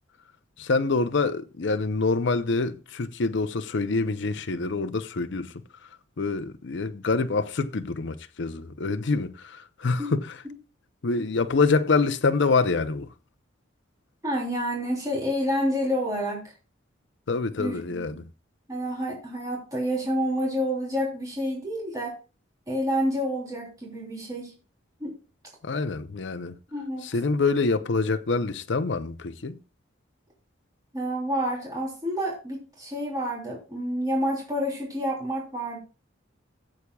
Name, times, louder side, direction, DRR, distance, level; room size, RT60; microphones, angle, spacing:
voice 1, 0.6-5.5 6.2-10.4 11.0-13.1 17.3-18.2 25.6-26.6 27.0-29.6, left 4 dB, 65° left, 0.6 m, -26 dB
voice 2, 14.2-16.4 17.6-18.2 18.7-22.1 22.7-24.5 25.0-25.1 26.7-27.1 30.9-35.8, equal, 20° right, 3.2 m, -29 dB
17.5 x 8.3 x 2.3 m
head